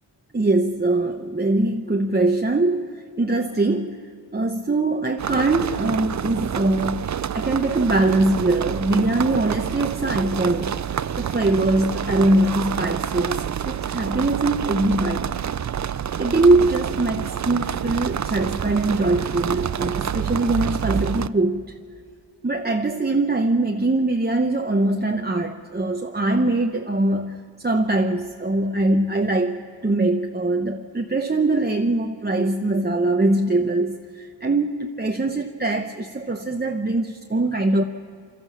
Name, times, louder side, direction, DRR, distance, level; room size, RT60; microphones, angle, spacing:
voice 1, 0.3-7.1 7.3-15.4 16.2-21.8 22.4-37.8, right 2 dB, 20° right, 3 dB, 0.8 m, -22 dB
sound 1, 5.2-21.3, right 8 dB, 40° right, 0.4 m, -28 dB
28.5 x 13.0 x 7.2 m, 2.4 s
wide cardioid pair, 100°, 45 cm